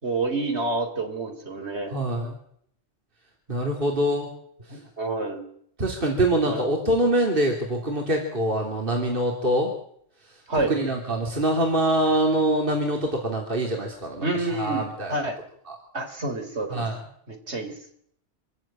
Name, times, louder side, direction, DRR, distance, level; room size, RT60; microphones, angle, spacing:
voice 1, 0.0-2.0 4.7-5.5 6.5-6.6 10.5-10.8 14.2-15.4 15.9-16.9 17.3-17.8, right 2 dB, 70° right, 7 dB, 3.8 m, -28 dB
voice 2, 1.9-2.4 3.5-4.3 5.8-9.7 10.7-14.3 14.6-15.1 15.7-15.8 16.7-17.0, right 1 dB, 50° right, 1 dB, 3.4 m, -24 dB
26.0 x 15.0 x 8.9 m, 0.69 s
omnidirectional pair, 1.2 m